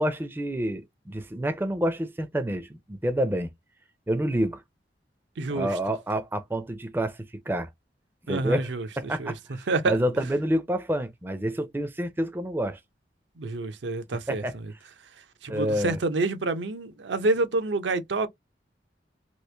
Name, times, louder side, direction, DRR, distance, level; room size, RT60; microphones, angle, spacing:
voice 1, 0.0-3.5 4.1-4.6 5.5-7.2 7.5-7.7 8.3-8.7 9.0-12.8 14.3-14.5 15.5-16.0, equal, 10° right, 0.4 m, -28 dB
voice 2, 5.4-5.8 8.3-8.9 9.2-9.3 9.7-10.0 13.4-14.4 15.4-18.3, right 3 dB, 85° right, 0.6 m, -27 dB
3.0 x 2.4 x 3.2 m
head